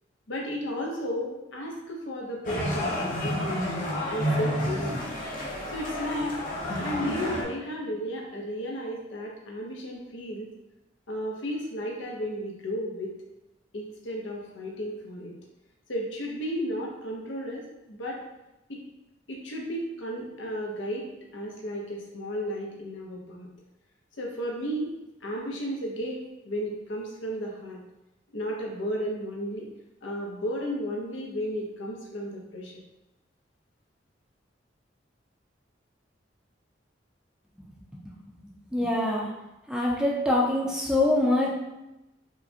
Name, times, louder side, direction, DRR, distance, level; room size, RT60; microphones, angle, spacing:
voice 1, 0.3-3.0 3.2-3.6 4.1-5.0 5.7-6.4 6.8-10.5 11.1-13.1 13.7-15.3 15.9-18.2 18.7-18.8 19.3-21.1 21.3-23.5 24.2-25.0 25.2-27.8 28.3-29.7 30.0-32.7, equal, 90° left, -1 dB, 0.8 m, -33 dB
sound 1, 2.4-7.4, left 1 dB, 45° left, 0.7 m, -30 dB
voice 2, 38.4-39.3 39.7-41.5, left 1 dB, 5° right, -3 dB, 0.5 m, -24 dB
4.9 x 2.2 x 2.7 m, 0.95 s
head